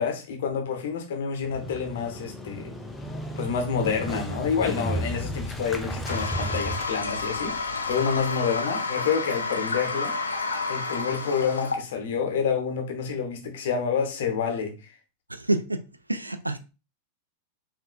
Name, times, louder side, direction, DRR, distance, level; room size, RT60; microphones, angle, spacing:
voice 1, 0.0-2.7 3.4-10.1 10.7-14.9, left 6 dB, 55° left, 0.9 m, -28 dB
Motorcycle, 1.4-8.2, equal, 5° left, 0.6 m, -34 dB
Toilet flush, 6.1-11.8, left 3 dB, 75° left, 0.5 m, -30 dB
voice 2, 15.3-16.6, right 2 dB, 85° right, 0.3 m, -28 dB
5.4 x 2.6 x 2.2 m
figure-of-eight pair, 90°, 0 cm